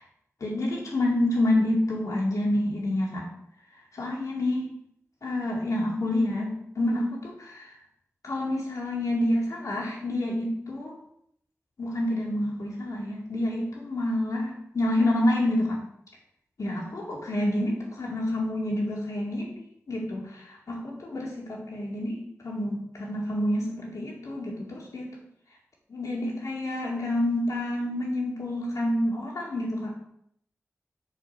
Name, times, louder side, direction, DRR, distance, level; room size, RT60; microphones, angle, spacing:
voice 1, 0.4-3.3 3.9-4.6 5.2-7.7 8.2-10.9 11.8-15.8 16.6-22.2 22.4-25.1 25.9-29.9, left 1 dB, 85° left, -3 dB, 2.7 m, -28 dB
6.9 x 6.5 x 4.5 m, 0.71 s
cardioid pair, 50°, 6 cm